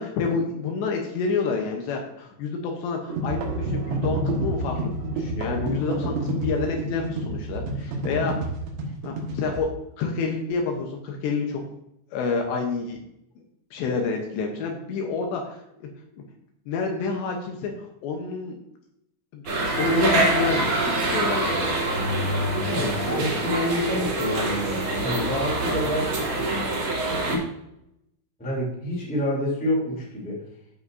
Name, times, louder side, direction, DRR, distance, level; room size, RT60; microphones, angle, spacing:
voice 1, 0.0-8.3 9.0-9.7 10.0-11.6 12.1-13.0 13.7-15.9 16.1-16.2 16.7-18.6 19.3-19.4 19.7-21.8, left 4 dB, 75° left, 2 dB, 2.9 m, -28 dB
sound 1, 3.1-9.6, right 2 dB, 70° right, 3.7 m, -28 dB
sound 2, 19.5-27.4, right 2 dB, 40° right, 2.7 m, -25 dB
voice 2, 22.6-26.5 27.3-27.4 28.4-30.4, left 1 dB, 5° left, -5 dB, 1.6 m, -28 dB
14.0 x 5.7 x 2.6 m, 0.80 s
omnidirectional pair, 5.5 m